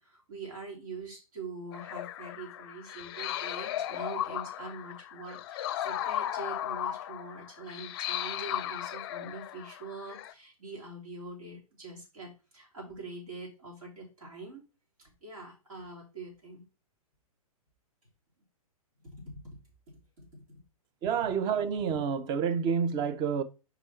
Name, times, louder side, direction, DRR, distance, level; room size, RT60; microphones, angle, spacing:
voice 1, 0.0-14.6 15.0-16.7 19.0-19.6 20.2-20.6, right 3 dB, 70° right, 3.7 m, -44 dB
sound 1, 1.7-10.3, left 12 dB, 40° left, 0.5 m, -36 dB
voice 2, 21.0-23.4, right 6 dB, 25° right, 0.6 m, -29 dB
5.2 x 5.1 x 4.3 m
figure-of-eight pair, 110°, 19 cm